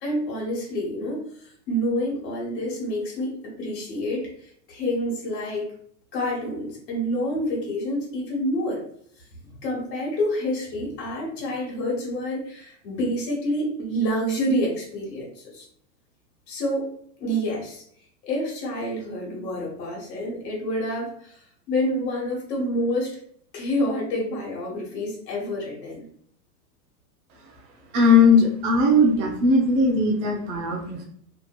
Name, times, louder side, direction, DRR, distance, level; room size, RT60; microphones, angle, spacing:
voice 1, 0.0-5.7 6.1-8.8 9.4-15.7 16.5-16.9 17.2-17.8 18.2-23.2 23.5-26.0, equal, 75° left, -3 dB, 1.4 m, -28 dB
voice 2, 27.9-31.1, left 2 dB, 25° right, 0 dB, 0.3 m, -19 dB
2.8 x 2.5 x 2.2 m, 0.64 s
hypercardioid pair, 115°, 49 cm